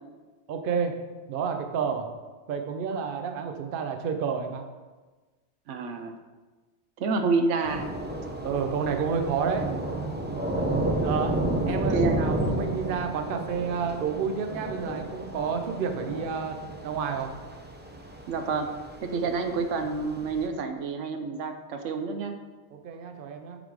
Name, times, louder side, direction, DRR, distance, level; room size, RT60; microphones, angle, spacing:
voice 1, 0.5-0.9 1.3-2.1 2.5-4.6 8.4-9.7 11.0-11.3 11.7-16.6 16.8-17.3 22.7-23.6, right 6 dB, 55° right, 6 dB, 0.8 m, -30 dB
voice 2, 5.7-6.1 7.0-7.9 11.7-12.3 18.3-18.7 19.0-22.4, right 4 dB, 85° right, 7 dB, 1.0 m, -28 dB
Thunder / Rain, 7.6-20.5, right 1 dB, 10° right, 0.5 m, -32 dB
8.3 x 4.0 x 4.7 m, 1.3 s
omnidirectional pair, 1.2 m